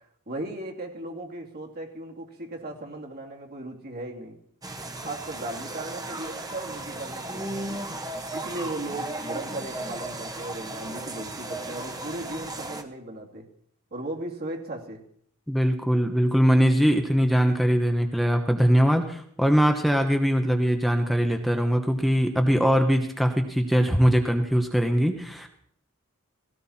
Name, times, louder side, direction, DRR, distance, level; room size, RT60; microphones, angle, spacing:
voice 1, 0.0-4.4 5.0-7.8 8.3-13.5 13.9-15.0, right 2 dB, 45° right, 1 dB, 2.8 m, -37 dB
sound 1, 4.6-12.8, right 2 dB, 15° right, 1.5 m, -35 dB
voice 2, 15.5-25.5, equal, ahead, 4 dB, 1.2 m, -22 dB
18.0 x 17.0 x 4.4 m, 0.66 s
head